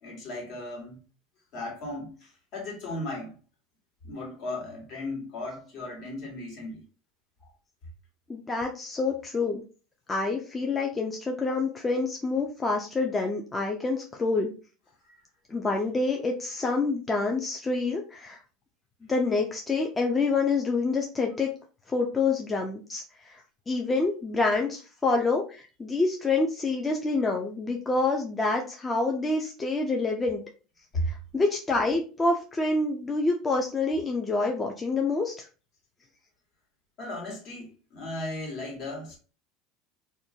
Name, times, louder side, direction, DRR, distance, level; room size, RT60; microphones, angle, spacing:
voice 1, 0.0-1.0 1.5-3.4 4.0-6.8 15.0-15.2 30.9-31.1 37.0-39.2, left 1 dB, 60° left, 1.4 m, -36 dB
voice 2, 8.3-9.6 10.1-14.5 15.5-18.4 19.1-21.5 21.9-23.4 23.7-30.4 31.1-35.4, left 3 dB, 20° left, 0.4 m, -27 dB
2.5 x 2.2 x 2.7 m
supercardioid pair, 100°, 0 cm